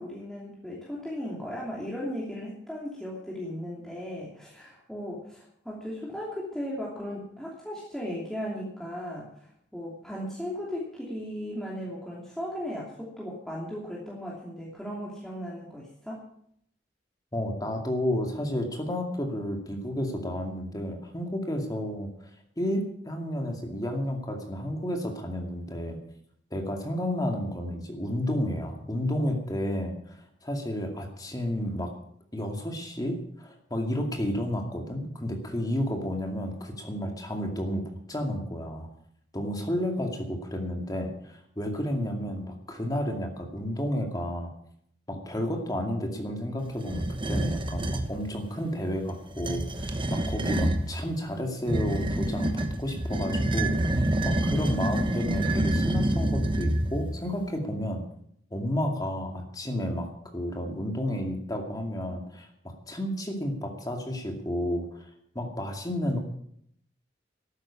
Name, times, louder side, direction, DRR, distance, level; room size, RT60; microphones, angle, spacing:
voice 1, 0.0-16.2, equal, ahead, -5 dB, 2.9 m, -36 dB
voice 2, 17.3-22.1 22.6-26.0 26.5-31.9 32.3-38.9 39.3-44.5 45.1-58.0 58.5-65.0 65.3-66.2, equal, 20° left, 3 dB, 2.3 m, -31 dB
sound 1, 46.8-48.1 49.3-50.9 51.7-57.2, right 1 dB, 30° right, 1.2 m, -27 dB
13.0 x 9.8 x 8.5 m, 0.69 s
head